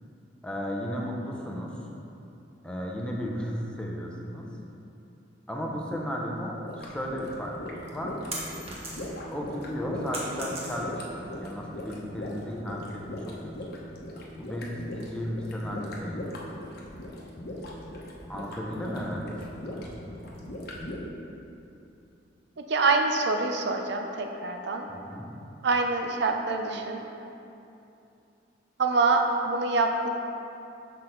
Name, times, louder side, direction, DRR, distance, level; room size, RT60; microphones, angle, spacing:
voice 1, 0.4-1.7 2.6-4.5 5.5-8.2 9.3-13.5 14.4-16.3 18.3-20.0 24.9-25.3, equal, 5° left, -2 dB, 0.7 m, -34 dB
sound 1, 6.7-21.0, left 1 dB, 55° left, 0.9 m, -39 dB
sound 2, 7.8-9.3 9.7-11.1, right 1 dB, 35° right, 1.2 m, -38 dB
voice 2, 22.6-24.9 25.6-27.1 28.8-30.1, right 3 dB, 65° right, 3 dB, 0.5 m, -25 dB
6.3 x 5.7 x 3.8 m, 2.8 s
head